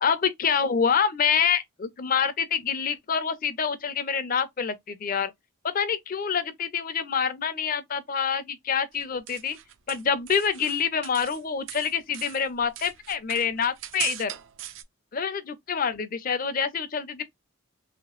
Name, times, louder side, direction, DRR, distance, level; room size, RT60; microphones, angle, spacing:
voice 1, 0.0-5.3 5.6-9.6 9.9-14.3 15.1-17.2, left 6 dB, 40° left, 0.4 m, -26 dB
sound 1, 8.9-11.4 11.7-14.8, right 12 dB, 60° right, 0.4 m, -39 dB
3.0 x 2.8 x 3.0 m
head